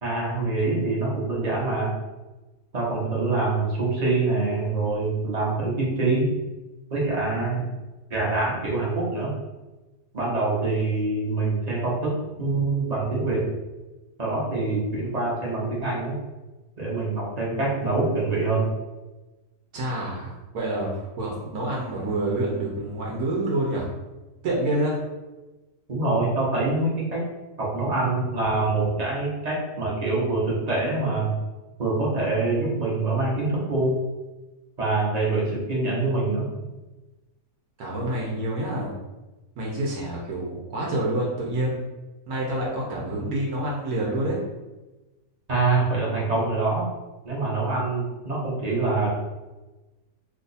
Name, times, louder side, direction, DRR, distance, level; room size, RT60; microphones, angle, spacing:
voice 1, 0.0-1.9 2.7-6.3 6.9-7.7 8.1-9.3 10.1-13.4 14.2-16.2 16.8-18.7 25.9-27.2 27.6-31.3 31.8-33.9 34.8-36.4 45.5-46.8 47.2-49.1, right 3 dB, 35° right, -5 dB, 0.8 m, -25 dB
voice 2, 19.7-23.9 24.4-25.0 37.8-38.9 39.6-41.8 42.3-44.4, right 1 dB, 75° right, -4 dB, 1.2 m, -27 dB
2.8 x 2.4 x 4.0 m, 1.1 s
omnidirectional pair, 1.6 m